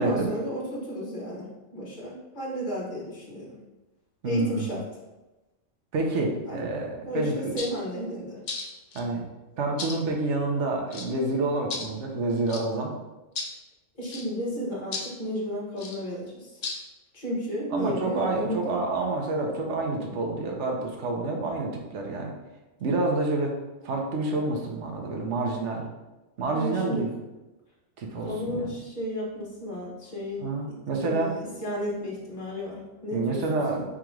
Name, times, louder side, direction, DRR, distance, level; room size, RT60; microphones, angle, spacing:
voice 1, 0.0-3.6 4.2-4.8 6.4-6.6 7.0-8.4 14.0-16.6 17.1-18.6 26.5-27.0 28.2-30.8 31.0-33.4 33.7-33.8, equal, 40° left, -4 dB, 1.3 m, -33 dB
voice 2, 4.2-4.7 5.9-7.6 8.9-9.3 9.6-12.9 17.7-22.3 22.8-23.6 23.8-25.9 26.4-27.1 28.0-28.7 30.4-31.3 33.1-33.8, right 2 dB, 65° right, 1 dB, 1.1 m, -28 dB
sound 1, 7.6-7.7 8.5-9.0 9.8-10.0 10.9-11.1 11.7-11.9 12.5-12.6 13.4-13.5 14.1-14.3 14.9-15.1 15.8-16.0 16.6-16.8, left 4 dB, 60° left, 0.4 m, -34 dB
3.7 x 2.9 x 4.7 m, 1.1 s
omnidirectional pair, 1.3 m